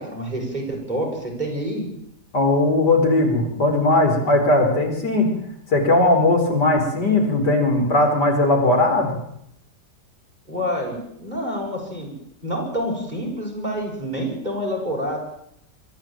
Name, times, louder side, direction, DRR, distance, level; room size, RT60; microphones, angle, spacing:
voice 1, 0.0-1.9 10.5-12.1 12.4-15.2, equal, 25° right, -1 dB, 7.2 m, -27 dB
voice 2, 2.3-5.3 5.7-9.2, left 2 dB, 85° left, 2 dB, 5.3 m, -18 dB
23.5 x 14.0 x 9.1 m, 0.74 s
omnidirectional pair, 1.8 m